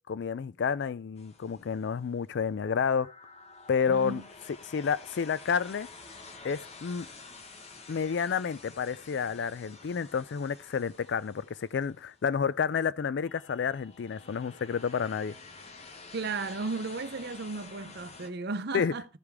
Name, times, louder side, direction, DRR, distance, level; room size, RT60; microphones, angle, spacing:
voice 1, 0.1-3.1 3.7-4.2 4.6-5.9 6.4-7.1 7.9-15.4 18.7-18.9, left 6 dB, 55° left, 0.3 m, -30 dB
sound 1, 1.2-2.2 3.0-12.4 13.2-18.3, left 4 dB, 30° left, 0.8 m, -50 dB
voice 2, 3.9-4.2 16.1-19.0, right 3 dB, 50° right, 0.7 m, -35 dB
14.0 x 4.9 x 3.5 m
head